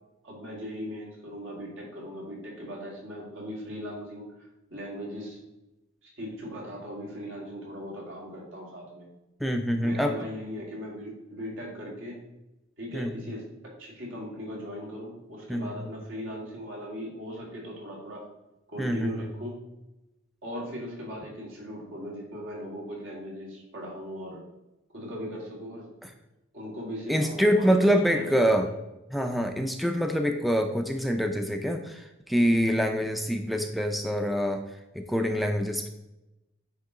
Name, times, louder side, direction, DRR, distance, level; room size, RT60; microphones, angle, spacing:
voice 1, 0.2-5.4 6.0-9.1 9.8-12.2 12.8-13.5 13.8-18.3 18.7-19.6 20.4-24.4 24.9-25.9 26.5-28.6, equal, 80° right, -3 dB, 2.2 m, -39 dB
voice 2, 9.4-10.1 12.9-13.1 15.5-15.7 18.8-19.3 26.0-26.1 27.1-28.7 29.1-34.6 34.9-35.9, equal, ahead, 5 dB, 0.4 m, -25 dB
9.0 x 3.2 x 3.8 m, 0.97 s
head